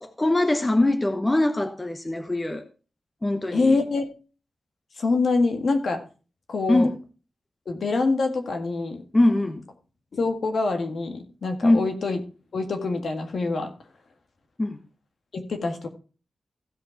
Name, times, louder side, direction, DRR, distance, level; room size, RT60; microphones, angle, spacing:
voice 1, 0.0-2.6 3.2-3.8 6.7-6.9 9.1-9.6 11.6-11.9 14.6-14.8, left 2 dB, 20° left, 0.9 m, -22 dB
voice 2, 3.5-4.0 5.0-6.0 6.5-6.9 7.7-9.0 10.1-12.2 12.5-13.7 15.3-15.9, left 3 dB, 65° left, 1.7 m, -25 dB
15.5 x 5.3 x 4.5 m
wide cardioid pair, 120°, 0 cm